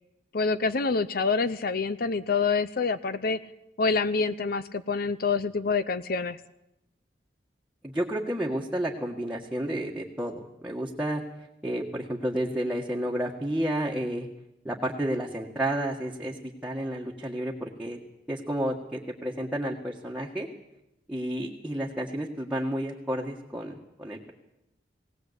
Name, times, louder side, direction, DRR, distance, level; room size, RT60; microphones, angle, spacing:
voice 1, 0.3-3.4 3.8-6.4, left 4 dB, 55° left, 13 dB, 0.7 m, -26 dB
voice 2, 7.8-11.2 11.6-14.3 14.6-18.0 18.3-20.5 21.1-24.3, right 1 dB, 5° right, -3 dB, 1.6 m, -31 dB
19.0 x 18.5 x 8.1 m, 0.87 s
head